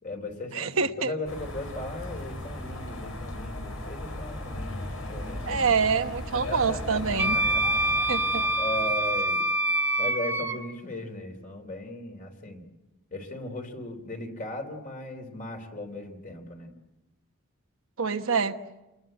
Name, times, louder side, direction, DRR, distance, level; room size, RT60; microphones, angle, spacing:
voice 1, 0.0-5.7 6.3-7.8 8.2-8.3 8.6-9.4 10.0-12.6 13.1-16.7, left 1 dB, 40° left, 5 dB, 3.6 m, -37 dB
voice 2, 0.5-1.1 5.5-7.4 8.1-8.4 18.0-18.6, right 5 dB, 85° right, 7 dB, 1.2 m, -26 dB
sound 1, 1.3-9.3, left 1 dB, 85° left, 6.6 m, -37 dB
Wind instrument woodwind instrument, 7.2-10.6, right 1 dB, 10° right, 1.8 m, -25 dB
28.5 x 20.5 x 7.8 m, 1.0 s
head